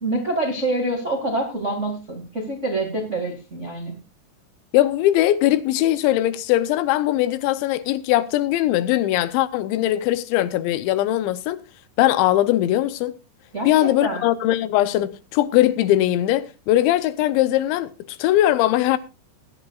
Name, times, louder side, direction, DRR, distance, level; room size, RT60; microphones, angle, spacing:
voice 1, 0.0-3.9 13.5-14.2, right 2 dB, 50° right, 0.8 m, -26 dB
voice 2, 4.7-11.6 12.0-13.2 13.7-19.0, left 14 dB, 80° left, 3.0 m, -20 dB
20.5 x 10.5 x 2.4 m
omnidirectional pair, 5.3 m